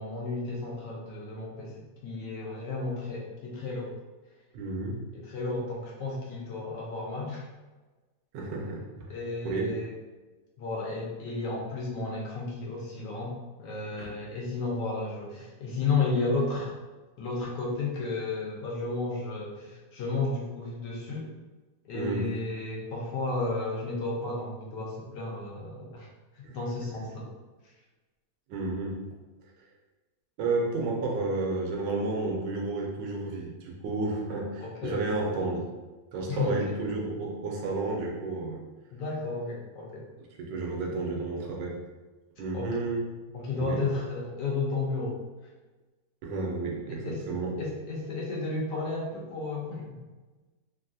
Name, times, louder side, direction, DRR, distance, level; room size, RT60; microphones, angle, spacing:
voice 1, 0.0-4.0 5.1-7.5 9.1-9.9 10.6-16.7 17.2-21.3 21.8-26.1 26.3-27.3 34.6-35.0 36.3-36.7 38.9-40.1 42.5-42.8 43.3-45.2 46.9-47.2 47.6-49.9, left 3 dB, 80° left, -3 dB, 1.3 m, -33 dB
voice 2, 4.5-5.1 8.3-9.2 9.4-9.7 14.0-14.1 21.9-22.3 26.4-26.6 28.5-29.0 30.4-35.7 36.1-38.6 40.4-41.8 42.4-43.0 43.5-43.8 46.2-47.5, right 3 dB, 90° right, 0 dB, 1.3 m, -31 dB
3.4 x 2.3 x 2.6 m, 1.2 s
omnidirectional pair, 1.9 m